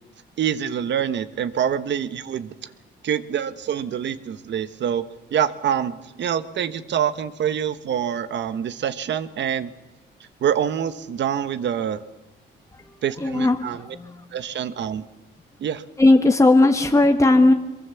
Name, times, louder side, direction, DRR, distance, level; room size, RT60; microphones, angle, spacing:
voice 1, 0.4-2.5 3.0-9.7 10.4-12.0 13.0-13.9 14.3-15.1 15.6-15.8, right 9 dB, 65° right, 13 dB, 1.3 m, -26 dB
voice 2, 13.2-13.6 13.9-14.2 16.0-17.5, left 2 dB, 15° left, 5 dB, 1.4 m, -16 dB
23.5 x 22.5 x 7.1 m, 1.1 s
cardioid pair, 90°, 20 cm